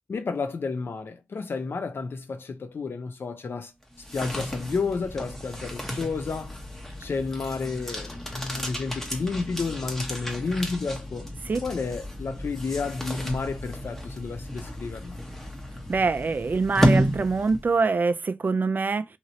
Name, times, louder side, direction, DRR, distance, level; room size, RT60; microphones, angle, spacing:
voice 1, 0.1-3.7 4.1-6.5 7.0-11.3 11.6-15.2, left 4 dB, 65° left, 0.7 m, -31 dB
sound 1, 3.8-17.9, equal, 10° left, 1.0 m, -31 dB
voice 2, 15.9-19.1, right 4 dB, 50° right, 0.4 m, -24 dB
2.9 x 2.8 x 2.8 m
cardioid pair, 50°, 4 cm